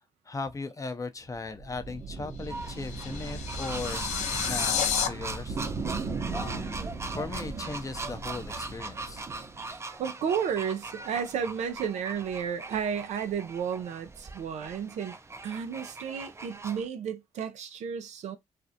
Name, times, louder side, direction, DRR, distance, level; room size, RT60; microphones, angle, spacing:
voice 1, 0.3-4.1 4.4-5.7 6.3-9.2, left 3 dB, 30° left, 0.5 m, -38 dB
sound 1, 1.2-9.7, right 4 dB, 45° right, 0.8 m, -38 dB
sound 2, 2.4-5.1, left 8 dB, 80° left, 0.4 m, -31 dB
sound 3, 2.5-16.9, right 3 dB, 20° right, 0.5 m, -41 dB
voice 2, 10.0-15.2 15.4-18.4, right 7 dB, 75° right, 0.5 m, -32 dB
2.5 x 2.0 x 2.6 m
supercardioid pair, 50°, 12 cm